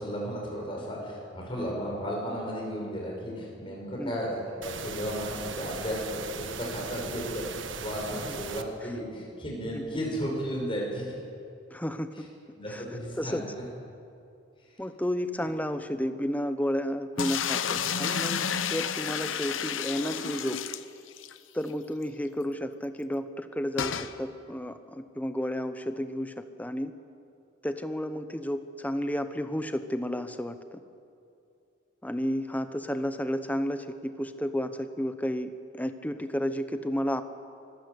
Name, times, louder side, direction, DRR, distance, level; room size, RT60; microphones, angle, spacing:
voice 1, 0.0-11.2 12.5-13.6 14.7-14.8 15.4-15.5, equal, 25° left, -2 dB, 5.6 m, -34 dB
sound 1, 4.6-8.6, right 5 dB, 80° right, 1.3 m, -39 dB
voice 2, 11.7-12.3 12.7-12.8 13.2-13.4 14.8-20.6 21.5-26.9 27.6-30.8 32.0-37.2, equal, 10° left, 10 dB, 0.9 m, -32 dB
sound 2, 17.2-21.4 21.7-21.8 22.0-22.1 23.8-24.1, left 7 dB, 90° left, 0.9 m, -31 dB
24.5 x 15.5 x 8.2 m, 2.5 s
head